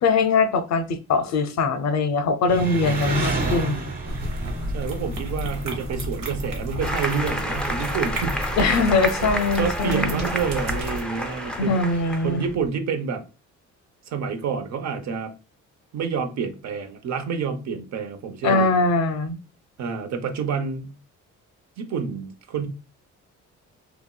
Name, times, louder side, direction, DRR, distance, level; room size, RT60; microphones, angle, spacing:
voice 1, 0.0-3.9 8.6-10.2 11.6-12.5 18.4-19.4, left 3 dB, 60° left, 0.5 m, -22 dB
Engine, 2.5-12.7, right 2 dB, 30° right, 1.3 m, -33 dB
sound 1, 4.1-11.0, equal, 85° right, 1.0 m, -32 dB
voice 2, 4.7-8.5 9.2-9.3 9.6-11.8 12.2-13.2 14.1-15.3 15.9-18.8 19.8-20.9 21.8-22.7, right 6 dB, 65° right, 0.7 m, -28 dB
Applause, 6.8-12.5, equal, 5° left, 0.5 m, -30 dB
2.9 x 2.8 x 2.2 m
cardioid pair, 90°, 30 cm